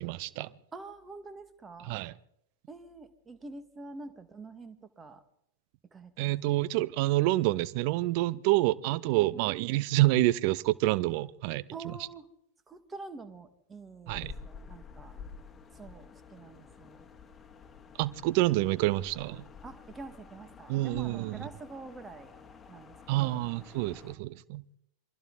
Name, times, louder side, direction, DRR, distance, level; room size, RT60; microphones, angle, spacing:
voice 1, 0.0-0.5 1.8-2.1 6.2-11.6 14.1-14.4 18.0-19.5 20.7-21.5 23.1-24.6, right 17 dB, 45° right, 0.7 m, -28 dB
voice 2, 0.7-2.0 2.7-5.2 5.9-6.3 9.2-9.5 11.7-12.3 12.7-15.2 15.7-17.1 19.6-22.4 22.7-23.4, right 3 dB, 15° right, 2.0 m, -46 dB
sound 1, 14.1-24.1, left 5 dB, 15° left, 2.1 m, -50 dB
27.5 x 23.0 x 4.1 m
figure-of-eight pair, 90°, 0 cm